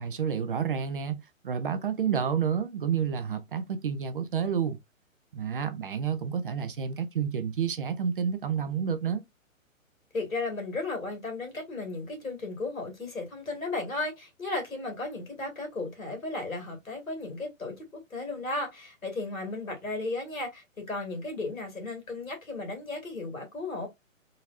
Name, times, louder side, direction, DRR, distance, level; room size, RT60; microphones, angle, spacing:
voice 1, 0.0-4.8 5.3-9.2, right 7 dB, 40° right, 0.5 m, -30 dB
voice 2, 10.1-23.9, left 2 dB, 75° left, 2.2 m, -35 dB
3.8 x 2.8 x 2.5 m
figure-of-eight pair, 130°, 41 cm